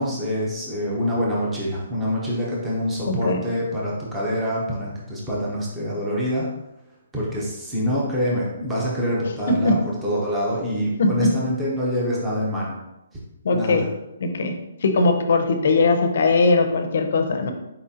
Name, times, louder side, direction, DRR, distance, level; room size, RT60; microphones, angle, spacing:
voice 1, 0.0-6.5 7.1-12.7 13.5-13.9, equal, 5° right, -5 dB, 0.6 m, -25 dB
voice 2, 3.1-3.4 9.6-9.7 11.0-11.3 13.4-13.8 14.2-14.5 14.8-17.5, left 3 dB, 45° left, 5 dB, 0.5 m, -20 dB
4.4 x 3.7 x 2.7 m, 0.91 s
hypercardioid pair, 180°, 0 cm